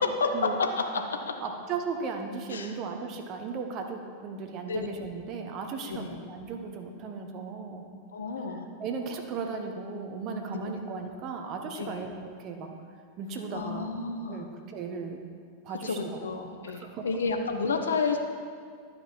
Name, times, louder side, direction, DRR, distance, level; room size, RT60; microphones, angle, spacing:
voice 1, 0.0-0.6 1.4-7.8 8.8-12.1 12.4-12.7 13.2-13.9 14.3-15.2 15.6-17.0, right 5 dB, 35° right, 4 dB, 1.0 m, -36 dB
voice 2, 8.1-8.7 10.5-10.7 11.8-12.1 13.5-14.5 15.7-18.2, left 4 dB, 70° left, 5 dB, 0.8 m, -31 dB
11.5 x 5.2 x 4.5 m, 2.1 s
figure-of-eight pair, 90°, 0 cm